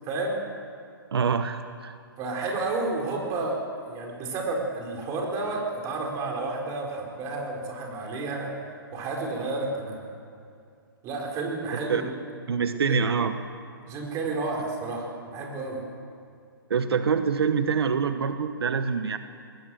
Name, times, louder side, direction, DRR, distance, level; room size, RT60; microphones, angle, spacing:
voice 1, 0.0-0.4 2.2-8.5 8.9-10.0 11.0-12.1 12.6-13.0 13.9-15.8, right 3 dB, 25° right, 0 dB, 4.4 m, -31 dB
voice 2, 1.1-1.9 11.7-12.0 12.5-13.3 16.7-19.2, right 6 dB, 80° right, 9 dB, 1.2 m, -25 dB
20.5 x 20.0 x 7.8 m, 2.4 s
hypercardioid pair, 145°, 13 cm